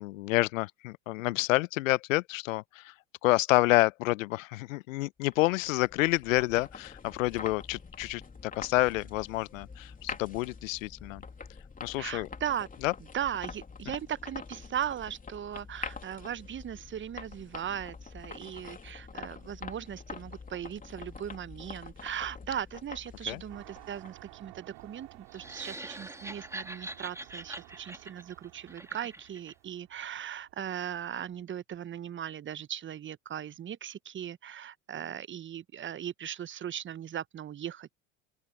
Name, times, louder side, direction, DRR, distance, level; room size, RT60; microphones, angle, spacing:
voice 1, 0.0-2.9 3.2-11.2 11.8-12.3 12.8-12.9 23.3-23.4, left 20 dB, 70° left, 0.8 m, -28 dB
sound 1, 5.3-24.3, left 5 dB, 20° left, 3.2 m, -45 dB
voice 2, 12.0-12.7 13.1-37.9, right 9 dB, 30° right, 1.0 m, -38 dB
sound 2, 23.5-31.4, right 26 dB, 60° right, 6.9 m, -54 dB
sound 3, 25.3-29.5, right 1 dB, 5° right, 3.6 m, -43 dB
open air
hypercardioid pair, 80°, 41 cm